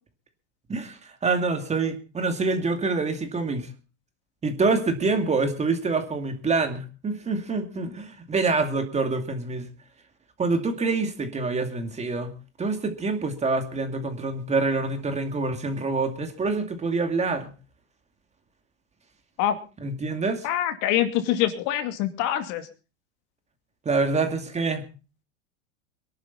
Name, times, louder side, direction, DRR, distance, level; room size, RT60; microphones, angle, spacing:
voice 1, 0.7-3.7 4.4-9.7 10.4-12.3 12.6-17.5 19.8-20.5 23.9-24.8, right 3 dB, 20° right, 7 dB, 2.3 m, -26 dB
voice 2, 20.4-22.7, left 12 dB, 55° left, 8 dB, 2.5 m, -25 dB
23.5 x 11.5 x 4.1 m, 0.34 s
hypercardioid pair, 110°, 36 cm